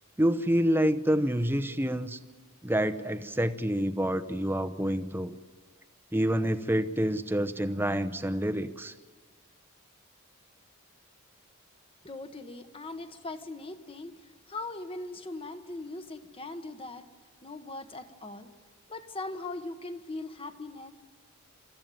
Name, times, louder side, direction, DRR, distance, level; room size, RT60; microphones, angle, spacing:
voice 1, 0.2-2.2 2.6-5.3 6.1-8.9, equal, 10° right, 11 dB, 0.7 m, -27 dB
voice 2, 12.0-17.0 17.4-18.5 18.9-20.9, left 2 dB, 25° left, 9 dB, 1.2 m, -40 dB
27.0 x 14.0 x 9.2 m, 1.4 s
head